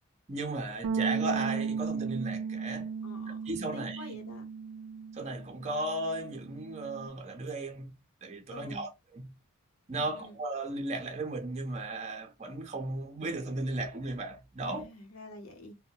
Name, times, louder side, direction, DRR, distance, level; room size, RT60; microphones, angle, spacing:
voice 1, 0.3-2.9 3.4-4.0 5.1-7.9 8.2-9.3 9.9-14.9, right 2 dB, 30° right, 0.5 m, -35 dB
Bass guitar, 0.8-7.1, right 5 dB, 85° right, 0.4 m, -35 dB
voice 2, 3.0-3.4 3.7-4.5 8.5-8.8 10.0-10.4 14.6-15.7, left 1 dB, 75° left, 0.9 m, -47 dB
2.6 x 2.1 x 2.7 m
head